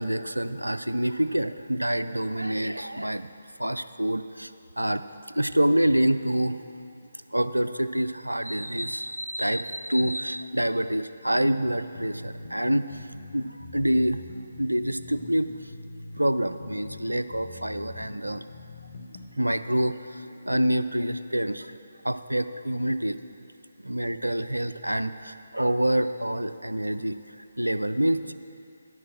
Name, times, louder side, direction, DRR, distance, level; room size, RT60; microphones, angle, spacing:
voice 1, 0.0-3.3 3.6-4.5 4.8-5.0 5.3-6.6 7.3-13.1 13.3-14.2 14.6-15.5 16.2-18.4 19.4-21.7 22.0-23.2 23.8-27.2 27.6-28.3, right 1 dB, 85° right, 11 dB, 0.4 m, -26 dB
sound 1, 11.9-19.3, left 2 dB, 50° left, 1.1 m, -43 dB
9.9 x 6.3 x 7.2 m, 2.6 s
figure-of-eight pair, 145°, 0 cm